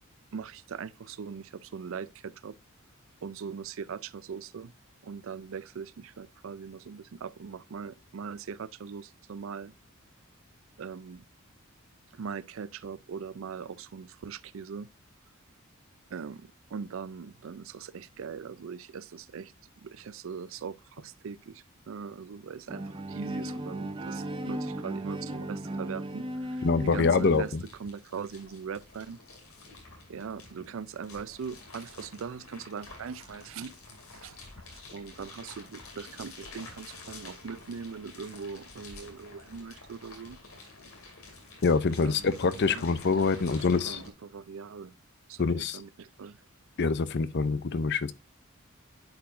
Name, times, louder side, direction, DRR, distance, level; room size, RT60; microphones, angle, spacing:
voice 1, 0.3-2.6 3.2-4.7 5.0-9.7 10.8-11.2 12.1-14.9 16.1-19.5 19.8-27.5 27.8-29.2 30.1-33.7 34.2-34.4 34.9-40.4 42.0-42.9 43.4-44.9 45.3-46.4, right 6 dB, 65° right, 0.4 m, -41 dB
Bowed string instrument, 22.7-27.6, right 1 dB, 25° right, 0.7 m, -36 dB
sound 1, 25.4-25.5 25.7-44.1, left 3 dB, 85° left, 2.4 m, -49 dB
voice 2, 26.6-27.6 41.6-44.0 45.4-45.8 46.8-48.1, left 4 dB, 55° left, 0.6 m, -25 dB
10.5 x 4.8 x 2.5 m
head